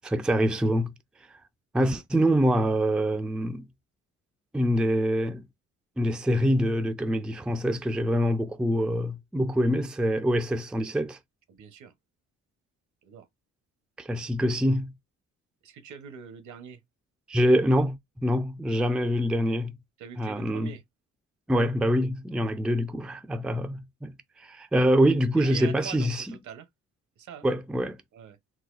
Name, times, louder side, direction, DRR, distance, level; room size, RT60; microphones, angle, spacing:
voice 1, 0.0-0.9 1.7-3.7 4.5-5.4 6.0-11.2 14.0-14.9 17.3-19.7 20.2-20.7 21.5-24.1 24.4-26.3 27.4-28.0, equal, 5° right, 0.3 m, -25 dB
voice 2, 11.5-11.9 13.0-13.3 15.6-16.8 20.0-20.8 24.7-24.8 25.3-26.7 27.2-27.5 28.1-28.4, right 7 dB, 70° right, 0.9 m, -43 dB
4.0 x 2.3 x 2.4 m
cardioid pair, 90°, 30 cm